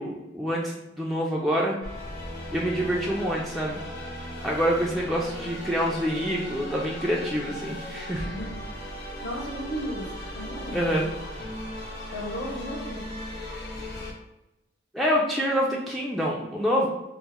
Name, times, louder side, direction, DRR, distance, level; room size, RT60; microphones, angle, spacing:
voice 1, 0.0-1.8 2.5-3.8 4.4-8.3 10.7-11.1 14.9-16.9, equal, ahead, -4 dB, 0.3 m, -26 dB
sound 1, 1.8-14.1, left 1 dB, 55° left, 0.9 m, -37 dB
voice 2, 8.2-8.6 9.2-10.8 12.1-13.0, equal, 80° left, -3 dB, 1.2 m, -34 dB
3.0 x 2.4 x 3.5 m, 0.93 s
head